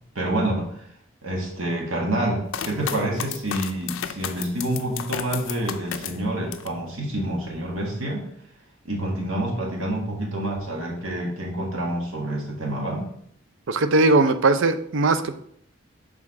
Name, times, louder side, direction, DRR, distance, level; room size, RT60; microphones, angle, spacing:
voice 1, 0.1-0.7 1.2-8.3 8.8-13.1, right 1 dB, 90° right, -1 dB, 1.6 m, -27 dB
sound 1, 2.5-6.8 7.2-7.9, left 8 dB, 75° left, 0.5 m, -33 dB
voice 2, 13.7-15.3, right 2 dB, 70° right, 10 dB, 0.5 m, -19 dB
6.5 x 3.5 x 4.8 m, 0.68 s
head